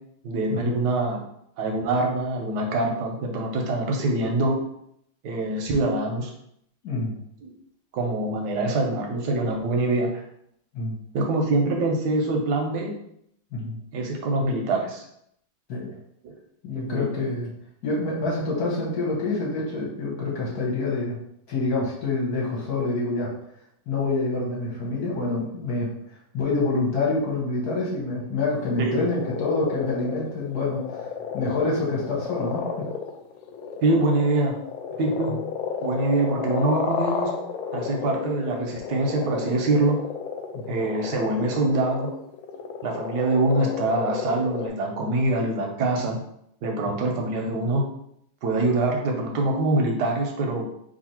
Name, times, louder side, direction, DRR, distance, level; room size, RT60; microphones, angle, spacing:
voice 1, 0.2-1.2 1.6-4.6 5.2-6.3 7.4-7.5 7.9-10.2 11.1-12.9 13.9-15.1 16.2-16.3 16.7-17.1 28.8-29.1 33.8-34.6 35.0-35.4 35.8-37.3 37.7-40.0 40.7-42.1 42.8-46.2 46.6-47.8 48.4-50.6, right 2 dB, 70° right, 1 dB, 1.0 m, -24 dB
voice 2, 6.8-7.2 10.7-11.0 13.5-13.8 15.7-15.9 16.6-17.5 17.8-21.2 21.5-23.3 23.9-25.9 26.3-31.1 31.3-32.6 40.7-40.8, left 3 dB, 55° left, -5 dB, 1.3 m, -26 dB
sound 1, 28.6-44.7, left 6 dB, 80° left, 1.3 m, -32 dB
3.1 x 2.6 x 4.2 m, 0.73 s
omnidirectional pair, 2.2 m